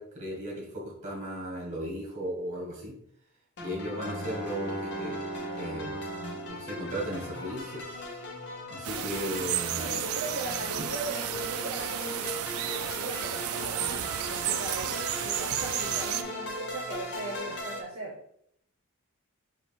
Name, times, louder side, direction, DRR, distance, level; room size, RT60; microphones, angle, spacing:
voice 1, 0.0-2.9 3.6-5.2 5.5-6.0 6.5-8.1 8.7-10.0 10.8-10.9, equal, 35° right, -3 dB, 1.6 m, -36 dB
sound 1, 3.6-17.8, left 1 dB, 55° left, 0.8 m, -39 dB
Bowed string instrument, 3.9-7.7, right 2 dB, ahead, 1.6 m, -39 dB
sound 2, 8.8-16.2, right 11 dB, 75° right, 0.3 m, -32 dB
voice 2, 9.7-12.5 12.7-18.1, right 2 dB, 60° right, -3 dB, 0.9 m, -39 dB
5.0 x 2.8 x 3.3 m, 0.69 s
head